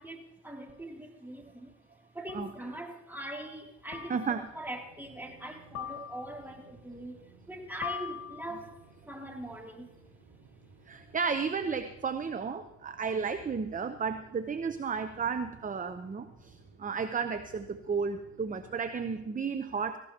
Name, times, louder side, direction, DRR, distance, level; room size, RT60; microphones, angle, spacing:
voice 1, 0.0-1.8 2.1-8.8 9.1-9.9, right 1 dB, 5° right, 1 dB, 2.9 m, -42 dB
sound 1, 0.7-0.8 2.3-2.7 3.9-4.5 5.7-6.5 7.8-8.7, left 10 dB, 70° left, 2.3 m, -41 dB
voice 2, 4.1-4.5 10.9-20.0, right 5 dB, 25° right, 9 dB, 0.8 m, -33 dB
sound 2, 4.3-19.2, right 3 dB, 85° right, 5.0 m, -58 dB
17.5 x 15.5 x 2.9 m, 0.90 s
cardioid pair, 90°, 30 cm